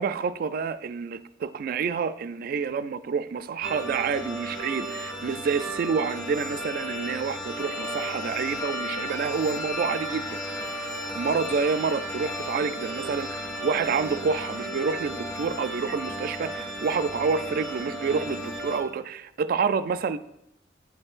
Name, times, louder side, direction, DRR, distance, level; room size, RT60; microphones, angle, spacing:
voice 1, 0.0-10.4 11.1-20.2, right 5 dB, 50° right, 13 dB, 0.3 m, -28 dB
sound 1, 3.6-18.8, equal, 20° left, 1.6 m, -34 dB
10.0 x 4.3 x 2.4 m, 0.84 s
head